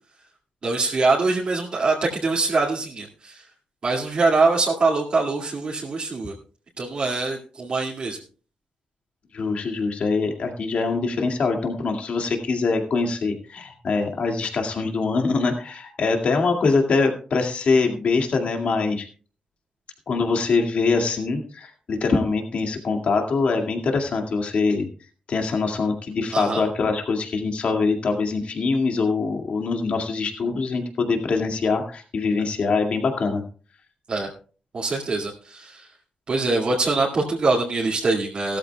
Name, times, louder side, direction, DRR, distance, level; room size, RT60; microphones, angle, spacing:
voice 1, 0.6-3.4 3.8-6.3 6.8-8.2 26.3-26.6 34.1-34.3 34.7-35.9 36.3-38.6, right 3 dB, 45° right, -4 dB, 2.2 m, -23 dB
voice 2, 9.3-19.1 20.1-24.9 25.3-33.4, left 4 dB, 60° left, 3 dB, 2.1 m, -23 dB
16.5 x 13.5 x 2.3 m, 0.39 s
wide cardioid pair, 125°, 2 cm